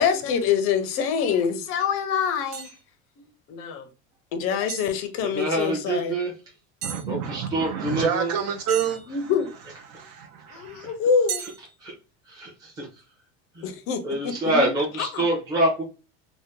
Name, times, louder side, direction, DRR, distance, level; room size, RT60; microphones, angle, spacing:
voice 1, 0.0-2.7 3.2-3.9 4.3-6.2 9.1-9.5 10.5-11.4 13.6-15.2, left 7 dB, 40° left, 0.5 m, -25 dB
sound 1, 0.9-1.0 1.8-1.9 2.5-2.8 4.7-4.9 6.8-7.1 8.7-9.5 11.3-11.7, right 7 dB, 65° right, 1.0 m, -35 dB
voice 2, 5.3-6.3 7.1-8.3 11.4-11.5 11.8-11.9 12.2-12.9 13.5-13.7 14.0-15.8, right 1 dB, 10° right, 0.8 m, -26 dB
voice 3, 6.8-9.3 9.9-11.0, right 8 dB, 45° right, 0.4 m, -29 dB
2.7 x 2.1 x 3.5 m
cardioid pair, 160°, 34 cm